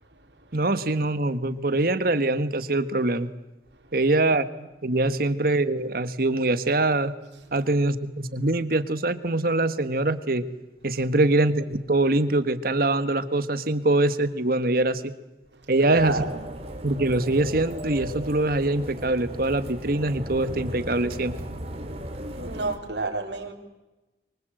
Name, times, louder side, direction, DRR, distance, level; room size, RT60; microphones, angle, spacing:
voice 1, 0.5-3.3 3.9-7.1 7.5-10.4 10.8-15.1 15.7-16.2 16.8-21.4, right 2 dB, 55° right, 1.5 m, -23 dB
voice 2, 15.8-16.4 22.3-23.5, right 3 dB, 85° right, 3.6 m, -29 dB
sound 1, 15.9-22.7, equal, 35° right, 3.5 m, -36 dB
24.5 x 24.0 x 7.9 m
head